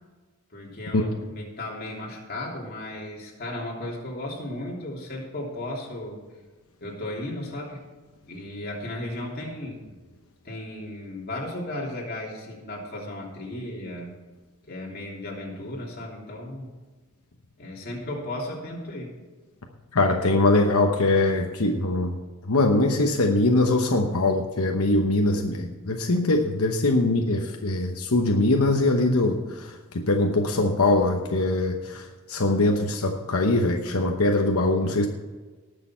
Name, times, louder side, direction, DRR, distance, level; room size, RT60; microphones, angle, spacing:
voice 1, 0.5-6.2 6.8-7.8 8.3-10.0 10.4-14.1 14.7-16.7 17.6-19.1, left 1 dB, 45° left, -2 dB, 3.0 m, -35 dB
voice 2, 19.9-22.1 22.5-35.1, left 2 dB, 80° left, 3 dB, 1.0 m, -22 dB
19.0 x 6.7 x 4.5 m, 1.3 s
head